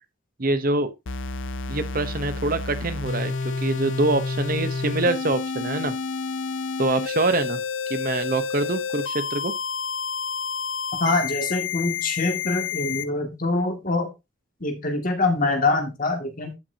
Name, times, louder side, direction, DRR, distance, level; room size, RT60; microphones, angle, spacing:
voice 1, 0.4-0.9 1.7-3.3 3.6-6.0 6.8-7.6 7.9-9.5, right 2 dB, 45° right, 0.9 m, -25 dB
sound 1, 1.1-13.0, left 5 dB, 65° left, 0.7 m, -29 dB
voice 2, 11.0-14.1 14.6-16.5, left 2 dB, 40° left, 2.2 m, -24 dB
14.5 x 6.0 x 2.8 m
head